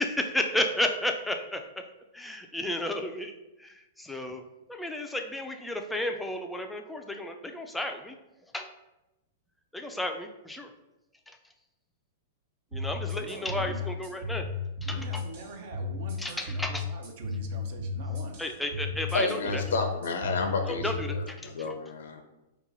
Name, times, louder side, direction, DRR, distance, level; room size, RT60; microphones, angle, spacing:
voice 1, 0.0-1.6 2.1-3.3 3.6-4.4 4.7-8.2 8.5-8.7 9.7-10.7 12.7-14.4 14.8-15.2 16.2-16.8 18.4-19.6 20.7-21.5, left 1 dB, 5° left, 4 dB, 0.3 m, -32 dB
sound 1, 12.7-21.1, left 4 dB, 75° right, 1.4 m, -34 dB
voice 2, 13.1-14.0 14.8-18.4, right 4 dB, 60° right, 4 dB, 0.5 m, -44 dB
voice 3, 19.1-22.2, left 4 dB, 80° left, 6 dB, 0.5 m, -31 dB
2.8 x 2.3 x 3.9 m, 0.97 s
hypercardioid pair, 130°, 0 cm